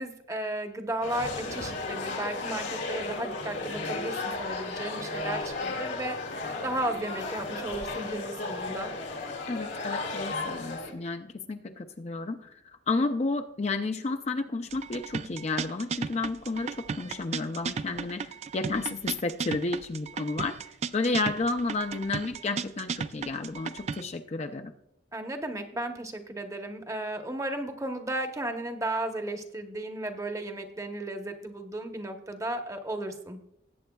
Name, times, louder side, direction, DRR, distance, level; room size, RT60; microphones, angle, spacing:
voice 1, 0.0-8.9 25.1-33.4, right 1 dB, 15° right, 5 dB, 0.9 m, -34 dB
sound 1, 1.0-10.9, left 3 dB, 75° left, 1.8 m, -34 dB
voice 2, 9.4-12.5 12.9-20.6 20.9-24.7, left 3 dB, 35° left, 7 dB, 0.4 m, -31 dB
sound 2, 14.7-24.0, right 5 dB, 35° right, 0.3 m, -35 dB
18.5 x 8.4 x 2.3 m, 0.77 s
head